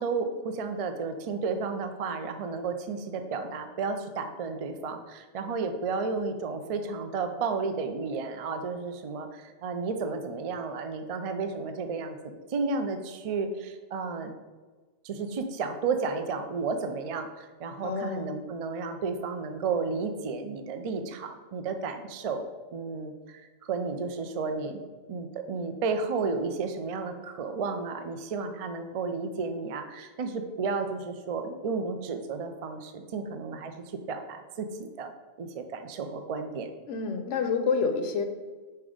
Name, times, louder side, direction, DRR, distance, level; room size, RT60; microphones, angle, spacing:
voice 1, 0.0-12.2 12.5-14.3 15.0-22.5 22.7-24.8 25.1-35.1 35.4-36.7, right 4 dB, 50° right, 7 dB, 0.4 m, -32 dB
voice 2, 17.8-18.3 36.8-38.2, left 5 dB, 70° left, 7 dB, 0.9 m, -28 dB
5.7 x 3.9 x 5.0 m, 1.3 s
omnidirectional pair, 1.3 m